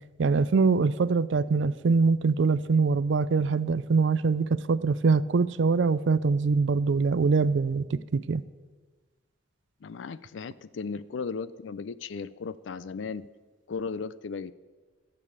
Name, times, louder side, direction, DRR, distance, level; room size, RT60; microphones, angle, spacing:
voice 1, 0.2-8.4, right 4 dB, 75° right, 17 dB, 0.4 m, -23 dB
voice 2, 9.8-13.3 13.7-14.5, left 5 dB, 80° left, 17 dB, 0.4 m, -36 dB
13.0 x 6.9 x 6.8 m, 1.4 s
head